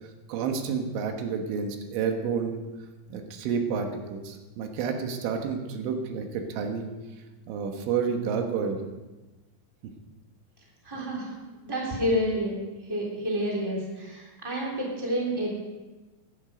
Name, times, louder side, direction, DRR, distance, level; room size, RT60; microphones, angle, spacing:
voice 1, 0.3-2.6 3.1-6.9 7.5-8.8, right 6 dB, 90° right, 4 dB, 3.8 m, -30 dB
voice 2, 10.8-11.3 11.6-12.5 12.9-15.5, equal, 5° right, -3 dB, 2.5 m, -29 dB
15.5 x 12.0 x 5.1 m, 1.2 s
omnidirectional pair, 5.3 m